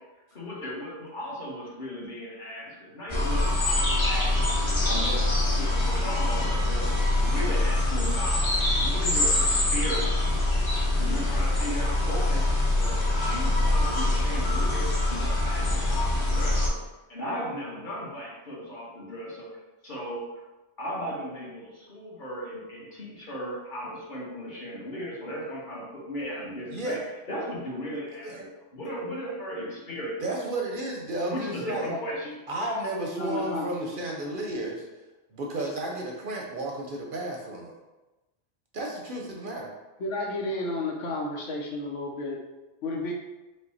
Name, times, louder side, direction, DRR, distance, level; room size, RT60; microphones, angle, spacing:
voice 1, 0.3-5.2 5.5-8.4 8.7-10.2 11.0-16.8 17.1-19.5 19.8-20.5 20.8-27.0 27.3-30.2 31.3-32.4, equal, 45° left, -4 dB, 1.2 m, -36 dB
sound 1, 3.1-16.7, left 2 dB, 30° left, 0.8 m, -24 dB
voice 2, 30.2-31.9 32.5-34.8 35.3-37.7 38.7-39.7, right 2 dB, 55° right, 0 dB, 0.7 m, -32 dB
voice 3, 33.1-34.3 40.0-42.4 42.8-43.1, left 2 dB, 85° left, -1 dB, 1.1 m, -32 dB
5.1 x 2.1 x 4.1 m, 1.1 s
omnidirectional pair, 1.2 m